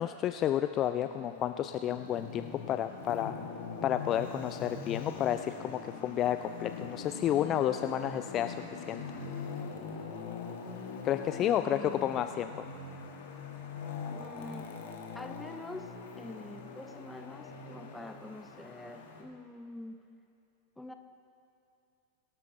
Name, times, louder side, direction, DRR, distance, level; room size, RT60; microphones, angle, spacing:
voice 1, 0.0-3.3 3.8-8.6 8.9-9.2 11.0-12.7, left 11 dB, 30° left, 10 dB, 0.3 m, -31 dB
Traffic noise roadway noise, 0.7-19.2, left 5 dB, 55° left, 1.6 m, -42 dB
voice 2, 11.4-12.2 14.1-14.8 15.1-20.1 20.8-20.9, left 2 dB, 5° left, 7 dB, 0.8 m, -46 dB
23.0 x 12.5 x 2.8 m, 2.6 s
figure-of-eight pair, 90°, 0 cm